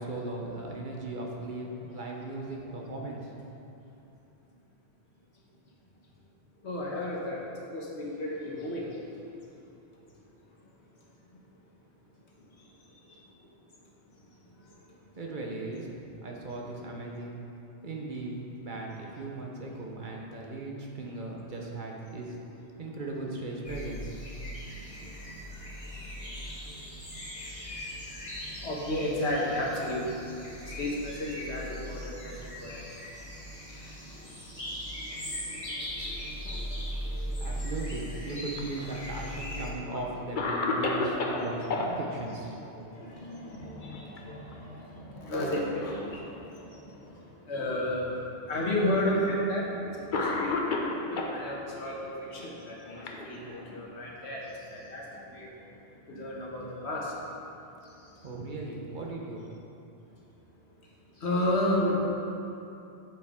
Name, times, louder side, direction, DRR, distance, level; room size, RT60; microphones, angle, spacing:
voice 1, 0.0-3.3 15.1-15.9 16.2-17.4 17.8-22.4 22.8-24.1 37.4-42.5 58.2-59.5, right 2 dB, 50° right, -1 dB, 1.1 m, -37 dB
voice 2, 6.6-7.4 7.7-8.9 13.1-13.2 24.7-25.3 26.1-26.4 26.7-26.8 27.7-27.8 28.4-30.3 30.6-33.1 33.7-37.7 38.1-38.2 39.5-40.0 42.3-48.2 48.5-55.5 56.1-57.1 57.8-57.9 61.2-62.1, left 1 dB, 85° left, -3 dB, 1.6 m, -34 dB
sound 1, 23.6-39.7, equal, 30° left, 1.6 m, -39 dB
Cough, 38.5-39.4 39.9-40.0 40.4-41.9 43.8-44.2 44.5-44.6 45.4-46.1 46.9-47.0 48.1-48.2 49.3-49.5 50.1-51.4 52.3-53.8, left 3 dB, 50° left, 0.9 m, -32 dB
8.7 x 7.6 x 3.7 m, 2.8 s
omnidirectional pair, 1.1 m